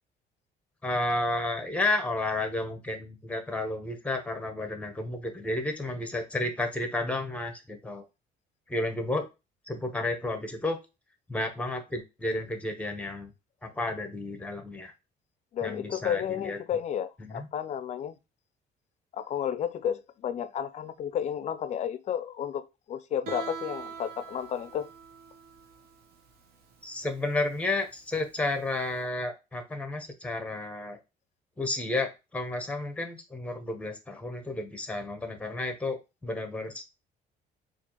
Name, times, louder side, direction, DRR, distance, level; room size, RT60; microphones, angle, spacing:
voice 1, 0.8-8.0 8.7-9.3 9.6-10.8 11.3-13.3 13.6-14.9 15.6-16.6 17.2-17.5 26.8-31.0 31.6-36.8, left 2 dB, 10° left, 0.8 m, -32 dB
voice 2, 15.5-18.1 19.1-24.9, left 9 dB, 45° left, 0.4 m, -32 dB
Guitar, 23.3-29.0, right 6 dB, 65° right, 0.9 m, -44 dB
4.2 x 2.5 x 2.9 m
cardioid pair, 110°, 17 cm